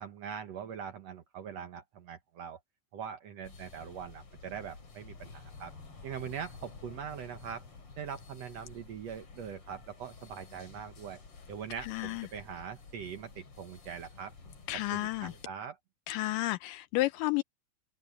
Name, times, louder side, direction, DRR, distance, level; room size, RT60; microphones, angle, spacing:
voice 1, 0.0-2.6 2.9-5.7 6.0-7.6 8.0-11.2 11.5-14.3 14.9-15.8, right 7 dB, 70° right, 1.6 m, -42 dB
taipei temple billmachine, 3.4-15.5, left 4 dB, 40° left, 4.2 m, -52 dB
voice 2, 11.8-12.3 14.7-15.3 16.1-17.4, left 17 dB, 85° left, 1.9 m, -31 dB
omnidirectional pair, 4.5 m